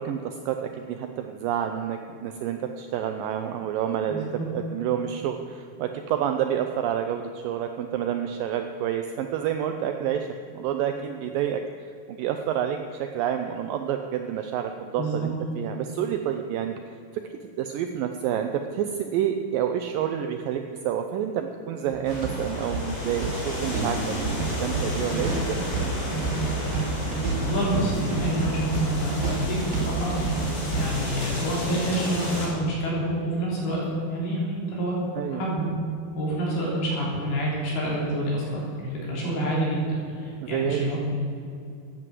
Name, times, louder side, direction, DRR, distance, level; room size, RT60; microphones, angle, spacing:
voice 1, 0.0-11.9 12.2-16.7 17.1-24.1 24.6-25.6 35.2-35.4 40.4-41.0, right 9 dB, 80° right, 6 dB, 2.0 m, -29 dB
voice 2, 4.1-4.5 15.0-15.1 27.4-35.0 35.3-35.7 36.2-41.0, right 1 dB, 70° left, -4 dB, 5.3 m, -28 dB
sound 1, 21.9-30.9, right 3 dB, 65° right, 5.0 m, -29 dB
sound 2, 22.0-32.5, left 1 dB, 50° left, 4.9 m, -33 dB
14.0 x 9.6 x 7.6 m, 2.5 s
omnidirectional pair, 4.7 m